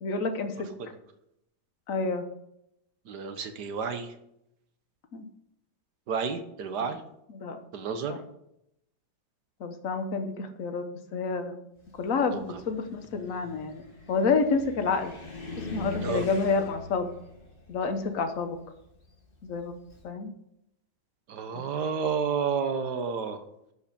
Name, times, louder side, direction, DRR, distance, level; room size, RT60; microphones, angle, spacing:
voice 1, 0.0-0.7 1.9-2.2 5.1-5.2 7.3-7.6 8.0-8.2 9.6-10.8 11.1-11.6 12.0-15.1 15.7-17.1 17.7-18.6 19.4-19.7 20.0-20.3 21.5-21.6, left 4 dB, 50° left, 7 dB, 1.3 m, -29 dB
voice 2, 3.1-4.1 6.1-7.0 7.7-8.2 12.3-12.4 16.0-16.2 21.3-23.4, right 6 dB, 60° right, 8 dB, 1.6 m, -30 dB
Car, 11.8-20.0, left 3 dB, 30° left, 1.7 m, -42 dB
11.5 x 5.6 x 6.8 m, 0.81 s
omnidirectional pair, 2.1 m